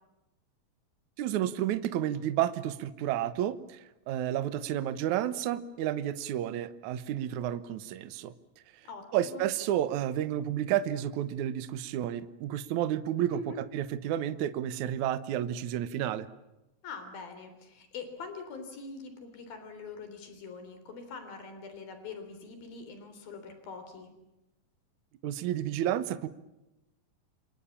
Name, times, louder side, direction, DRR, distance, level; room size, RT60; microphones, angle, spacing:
voice 1, 1.2-8.3 9.1-13.4 13.7-16.3 25.2-26.3, right 11 dB, 65° right, 13 dB, 2.3 m, -31 dB
voice 2, 8.8-9.4 13.3-13.6 16.8-24.1, left 4 dB, 85° left, 8 dB, 5.3 m, -43 dB
28.0 x 25.0 x 7.3 m, 0.95 s
omnidirectional pair, 4.0 m